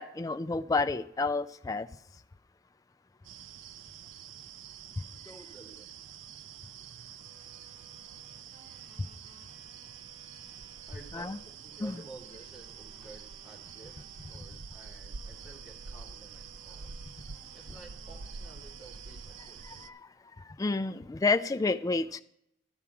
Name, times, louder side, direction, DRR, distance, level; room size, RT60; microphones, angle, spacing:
voice 1, 0.0-1.9 11.1-11.4 11.8-11.9 19.7-20.0 20.6-22.2, left 3 dB, 20° left, 12 dB, 0.3 m, -30 dB
sound 1, 3.2-19.9, right 6 dB, 75° right, 0.4 m, -47 dB
voice 2, 5.2-5.9 10.9-17.0 17.5-19.9, right 2 dB, 5° right, -4 dB, 2.4 m, -52 dB
sound 2, 7.2-14.7 15.1-19.9, right 1 dB, 50° right, 3.9 m, -62 dB
12.5 x 4.7 x 7.1 m, 0.77 s
head